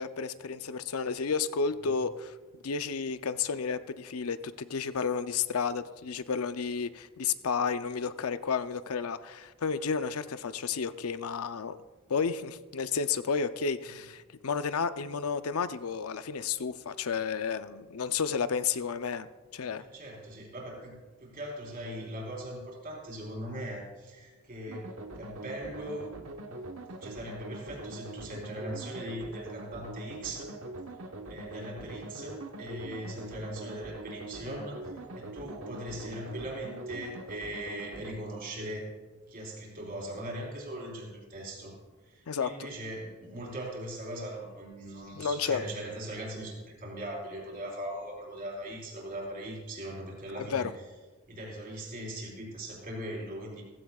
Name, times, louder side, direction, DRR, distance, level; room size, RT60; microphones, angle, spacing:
voice 1, 0.0-2.3 2.6-11.8 12.1-19.3 19.5-19.8 42.3-42.5 45.1-45.6 50.4-50.7, left 5 dB, 85° left, 12 dB, 0.6 m, -31 dB
voice 2, 19.8-26.1 27.0-30.6 31.3-38.9 39.3-41.7 42.0-50.7 51.3-53.6, right 1 dB, 45° right, -2 dB, 4.1 m, -40 dB
sound 1, 24.7-38.1, right 2 dB, 70° right, 1.2 m, -43 dB
16.5 x 15.5 x 2.4 m, 1.3 s
head